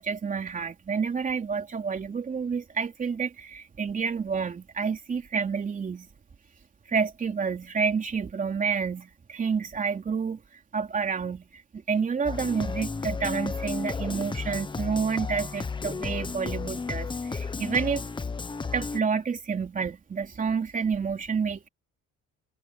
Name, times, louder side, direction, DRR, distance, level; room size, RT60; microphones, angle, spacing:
voice 1, 0.0-6.1 6.9-10.4 10.7-18.0 18.7-21.7, right 5 dB, 25° right, 3.4 m, -29 dB
sound 1, 12.3-19.0, left 4 dB, 15° left, 1.0 m, -33 dB
cardioid pair, 165°, 29 cm